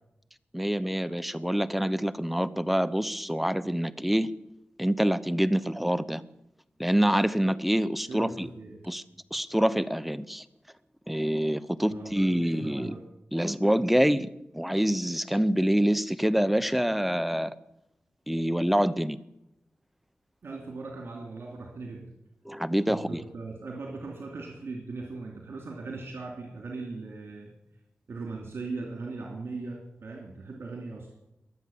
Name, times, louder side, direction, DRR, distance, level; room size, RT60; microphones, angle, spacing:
voice 1, 0.5-4.3 4.8-6.2 6.8-8.5 8.8-9.0 9.3-10.4 11.1-13.0 13.3-17.5 18.3-19.2 22.5-23.2, equal, 5° right, 14 dB, 0.8 m, -26 dB
voice 2, 8.1-8.9 11.9-13.0 20.4-22.1 22.9-27.5 28.1-31.1, right 3 dB, 75° right, 0 dB, 2.8 m, -39 dB
22.0 x 8.1 x 7.1 m, 0.85 s
cardioid pair, 55°, 4 cm